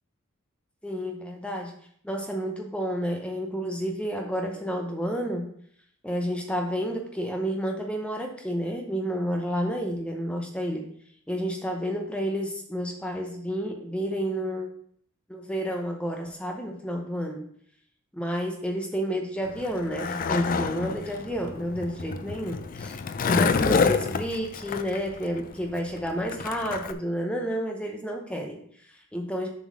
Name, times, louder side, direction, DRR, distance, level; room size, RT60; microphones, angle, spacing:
voice 1, 0.8-1.7 2.0-5.5 6.0-10.9 11.3-14.7 15.3-17.5 18.1-22.9 23.3-29.5, equal, 5° left, 2 dB, 0.7 m, -30 dB
Skateboard, 19.5-26.9, left 5 dB, 40° left, 0.4 m, -28 dB
7.3 x 3.8 x 6.1 m, 0.64 s
head